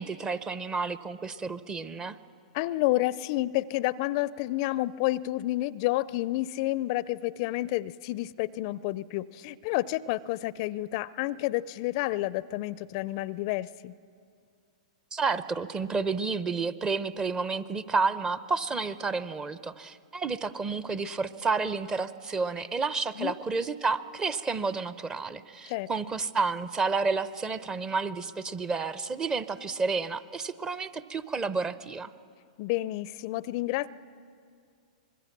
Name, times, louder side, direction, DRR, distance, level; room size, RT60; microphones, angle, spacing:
voice 1, 0.0-2.2 15.1-32.1, right 4 dB, 20° right, 15 dB, 0.7 m, -30 dB
voice 2, 2.5-13.9 23.2-23.4 25.7-25.9 32.6-33.9, left 17 dB, 50° left, 20 dB, 0.4 m, -30 dB
25.0 x 21.0 x 6.0 m, 2.3 s
hypercardioid pair, 115°, 4 cm